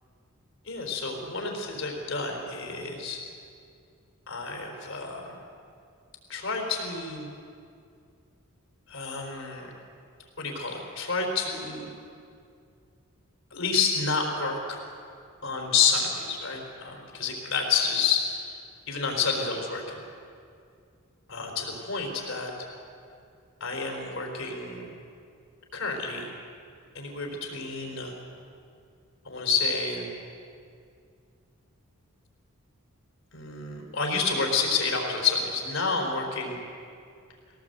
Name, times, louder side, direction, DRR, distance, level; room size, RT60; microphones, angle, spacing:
voice 1, 0.6-3.2 4.3-5.4 6.3-7.3 8.9-9.7 10.4-11.9 13.5-14.8 15.4-18.6 18.9-20.0 21.3-22.5 23.6-24.9 25.7-26.3 26.9-28.1 29.2-30.1 33.3-36.6, left 5 dB, 60° left, 1 dB, 4.2 m, -29 dB
22.0 x 18.0 x 8.1 m, 2.4 s
head